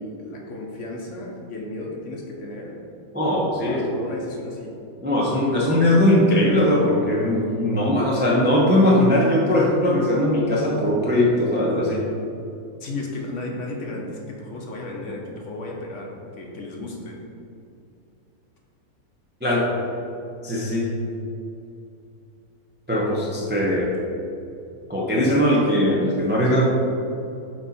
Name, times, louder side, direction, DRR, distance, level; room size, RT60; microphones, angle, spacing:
voice 1, 0.0-2.8 3.7-4.8 12.8-17.2, left 2 dB, 60° left, -1 dB, 0.9 m, -34 dB
voice 2, 3.1-3.8 5.0-12.0 19.4-19.7 20.4-20.9 22.9-23.9 24.9-26.7, left 1 dB, 15° right, -4 dB, 0.4 m, -20 dB
6.1 x 4.3 x 4.1 m, 2.7 s
omnidirectional pair, 1.7 m